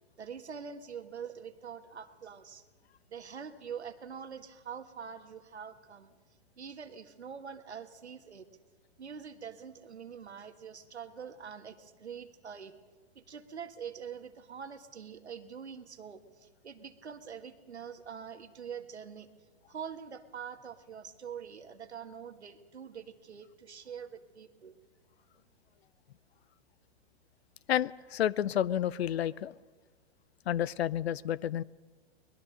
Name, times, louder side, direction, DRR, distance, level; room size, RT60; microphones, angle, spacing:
voice 1, 0.2-2.7 3.1-6.1 6.6-8.5 9.0-12.8 13.2-19.3 19.7-24.8, right 7 dB, 90° right, 9 dB, 1.7 m, -44 dB
voice 2, 27.7-29.5 30.5-31.6, left 10 dB, 70° left, 22 dB, 0.7 m, -30 dB
24.0 x 20.5 x 6.6 m, 1.3 s
hypercardioid pair, 120°, 32 cm